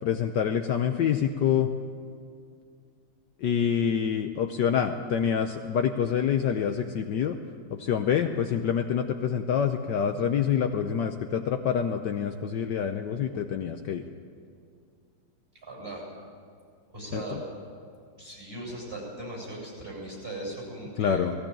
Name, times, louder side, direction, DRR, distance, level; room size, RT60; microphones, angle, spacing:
voice 1, 0.0-1.7 3.4-7.4 7.7-14.0 17.1-17.4 21.0-21.3, left 8 dB, 65° left, 5 dB, 1.3 m, -26 dB
voice 2, 15.6-16.1 16.9-17.4 18.2-21.3, right 1 dB, 30° right, -2 dB, 7.5 m, -38 dB
18.5 x 16.0 x 8.9 m, 2.3 s
omnidirectional pair, 2.2 m